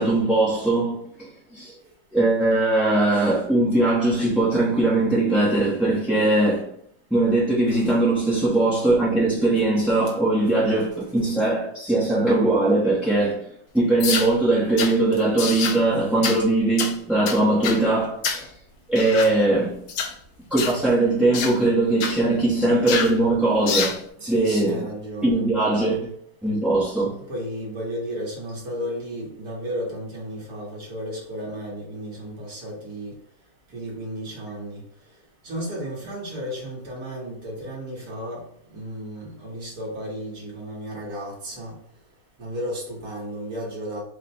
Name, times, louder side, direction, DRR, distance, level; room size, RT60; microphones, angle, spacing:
voice 1, 0.0-1.7 2.1-6.7 7.1-13.5 13.7-18.5 18.9-19.8 20.5-24.0 24.3-24.9 25.2-26.1 26.4-27.2, right 2 dB, ahead, 0.7 m, -21 dB
sound 1, 14.0-14.3 14.8-14.9 15.4-15.8 16.2-16.4 16.8-16.9 17.3-17.8 18.2-18.5 19.0-19.3 19.9-20.1 20.6-20.8 21.3-21.6 22.0-22.2 22.9-23.2 23.7-24.0, left 6 dB, 80° left, 1.2 m, -26 dB
voice 2, 19.1-19.6 24.2-25.5 27.3-33.1 33.7-34.8 35.4-38.4 38.7-41.7 42.4-44.0, equal, 75° right, 1.9 m, -33 dB
4.7 x 2.2 x 4.2 m
omnidirectional pair, 1.6 m